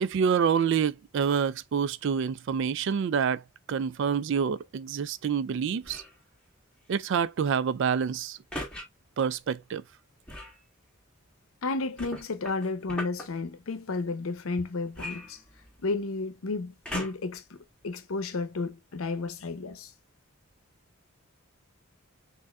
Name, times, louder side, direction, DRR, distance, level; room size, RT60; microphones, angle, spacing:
voice 1, 0.0-3.4 3.7-6.0 6.9-8.4 9.2-9.8, right 7 dB, 60° right, 0.3 m, -27 dB
sound 1, 5.8-6.2 8.5-8.8 10.2-10.6 12.0-13.3 14.9-15.9 16.8-17.4 18.0-18.1, left 1 dB, 5° left, 1.3 m, -38 dB
voice 2, 11.6-15.4 15.8-19.9, left 3 dB, 90° left, 0.7 m, -32 dB
6.5 x 2.5 x 2.3 m
head